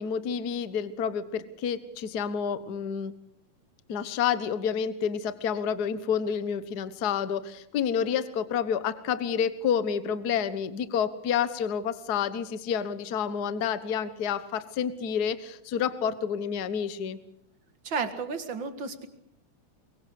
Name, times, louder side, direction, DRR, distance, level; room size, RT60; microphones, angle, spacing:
voice 1, 0.0-3.2 3.9-17.2, left 7 dB, 55° left, 13 dB, 1.1 m, -29 dB
voice 2, 17.8-19.1, right 5 dB, 45° right, 9 dB, 2.3 m, -32 dB
24.0 x 23.0 x 6.5 m, 0.73 s
omnidirectional pair, 3.6 m